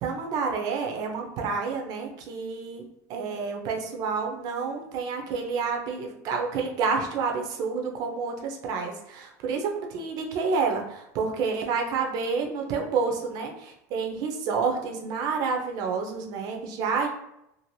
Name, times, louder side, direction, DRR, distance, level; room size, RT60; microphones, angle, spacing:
voice 1, 0.0-2.8 3.1-17.1, right 5 dB, 50° right, 2 dB, 0.6 m, -29 dB
2.6 x 2.5 x 3.0 m, 0.82 s
supercardioid pair, 140°, 9 cm